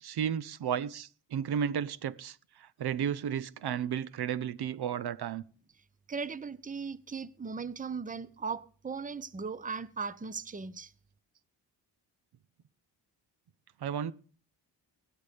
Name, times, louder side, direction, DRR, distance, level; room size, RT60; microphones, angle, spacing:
voice 1, 0.0-5.4 13.8-14.1, right 8 dB, 65° right, 0.8 m, -33 dB
voice 2, 6.1-10.9, right 5 dB, 20° right, 0.8 m, -38 dB
16.5 x 12.5 x 3.4 m
cardioid pair, 75°, 42 cm